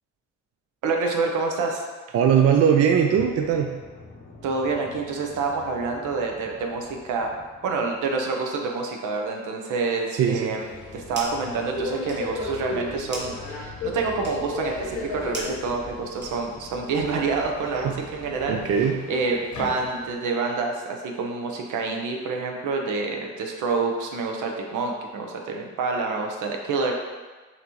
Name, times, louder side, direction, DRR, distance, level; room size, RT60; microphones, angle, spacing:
voice 1, 0.8-1.8 4.4-7.3 7.6-26.9, right 4 dB, 80° right, 1 dB, 0.7 m, -27 dB
voice 2, 2.1-3.8 10.1-10.6 17.7-17.9 18.5-19.0, right 8 dB, 55° right, 3 dB, 0.4 m, -20 dB
sound 1, 3.2-8.3 10.4-18.9, left 3 dB, 25° left, 0.7 m, -46 dB
Subway metro underground, 10.6-20.3, left 2 dB, 80° left, 1.4 m, -36 dB
sound 2, 10.8-11.5 11.8-16.7, right 1 dB, 35° right, 1.2 m, -41 dB
5.8 x 2.8 x 3.0 m, 1.3 s
cardioid pair, 90°, 30 cm